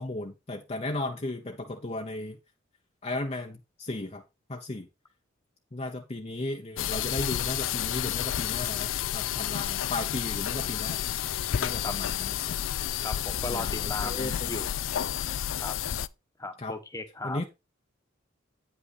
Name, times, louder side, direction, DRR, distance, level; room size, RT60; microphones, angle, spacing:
voice 1, 0.0-2.4 3.0-4.2 4.5-4.9 5.7-11.0 11.6-12.6 13.5-14.5 16.6-16.7 17.2-17.5, left 2 dB, 30° left, 0.8 m, -35 dB
sound 1, 6.8-16.1, left 10 dB, 80° left, 0.4 m, -30 dB
voice 2, 13.0-14.7 15.6-15.8 16.4-17.4, left 2 dB, 15° left, 1.1 m, -36 dB
9.1 x 5.6 x 4.1 m
head